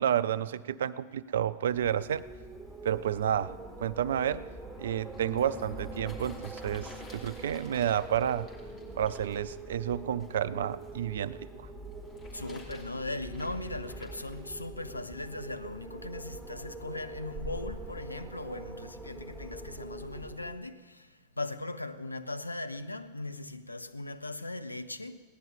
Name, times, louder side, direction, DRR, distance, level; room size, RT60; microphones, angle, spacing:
voice 1, 0.0-2.2 2.8-3.5 3.8-4.4 4.8-8.5 9.0-11.7, right 10 dB, 60° right, 0.4 m, -30 dB
Wind, 1.7-20.7, right 2 dB, 5° right, 1.3 m, -44 dB
sound 1, 5.1-11.0 11.9-14.4 15.0-15.1, left 2 dB, 30° left, 3.0 m, -52 dB
voice 2, 12.3-25.2, left 2 dB, 85° left, 0.6 m, -39 dB
17.0 x 10.5 x 5.2 m
figure-of-eight pair, 90°, 0 cm